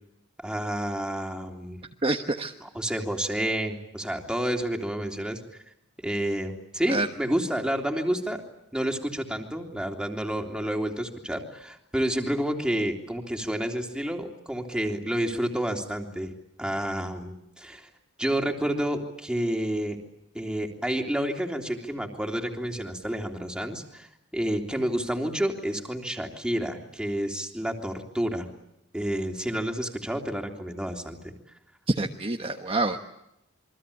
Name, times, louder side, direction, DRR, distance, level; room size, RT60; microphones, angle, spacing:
voice 1, 0.4-1.8 2.6-5.4 6.0-8.4 8.7-16.3 16.6-17.9 18.2-20.0 20.3-28.5 28.9-31.3, right 1 dB, 5° right, 2 dB, 3.2 m, -29 dB
voice 2, 2.0-2.5 6.9-7.1 31.9-33.0, right 2 dB, 30° right, 3 dB, 1.3 m, -26 dB
28.0 x 23.5 x 8.6 m, 0.82 s
head